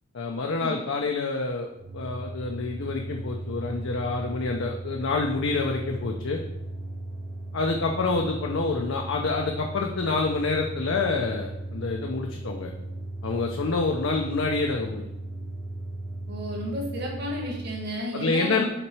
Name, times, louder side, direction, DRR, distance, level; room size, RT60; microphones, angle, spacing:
voice 1, 0.1-1.7 1.9-6.4 7.5-12.7 13.2-15.0 18.1-18.6, left 3 dB, 65° left, 2 dB, 0.6 m, -27 dB
sound 1, 1.7-17.8, right 2 dB, 30° right, 0.8 m, -36 dB
voice 2, 16.3-18.6, equal, 55° right, -2 dB, 1.6 m, -32 dB
5.9 x 4.1 x 4.7 m, 0.90 s
head